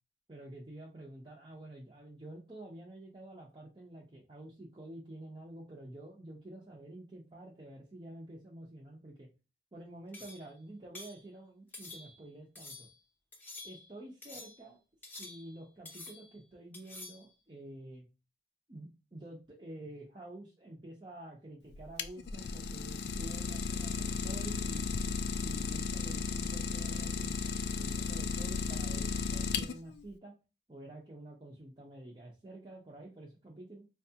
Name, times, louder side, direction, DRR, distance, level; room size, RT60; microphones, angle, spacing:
voice 1, 0.3-9.3 9.7-12.9 13.6-14.8 15.2-18.1 18.7-30.3 30.7-33.8, right 1 dB, 25° right, -4 dB, 0.6 m, -49 dB
sound 1, 10.1-10.5 10.9-11.2 11.7-12.3 12.6-12.9 13.3-13.9 14.2-14.7 15.0-15.6 15.9-16.4 16.7-17.3, left 2 dB, 10° left, 0.7 m, -49 dB
Idling, 21.7-30.0, left 5 dB, 65° left, 0.3 m, -35 dB
4.5 x 2.3 x 2.7 m, 0.29 s
head